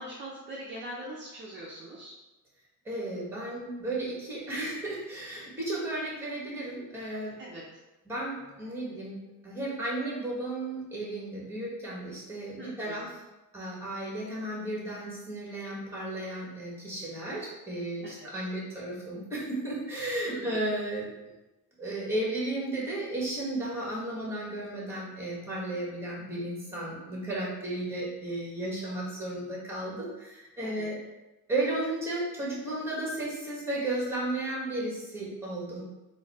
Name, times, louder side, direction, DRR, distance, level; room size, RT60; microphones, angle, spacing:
voice 1, 0.0-2.1 7.4-7.8 12.6-13.1 18.0-18.3 20.3-20.6 30.6-30.9, right 1 dB, 35° right, -4 dB, 0.6 m, -42 dB
voice 2, 2.8-7.3 8.1-9.2 9.4-13.1 13.5-21.1 21.8-31.0 31.5-35.8, right 1 dB, 5° right, -5 dB, 1.4 m, -34 dB
3.9 x 2.7 x 4.2 m, 1.1 s
cardioid pair, 140°, 34 cm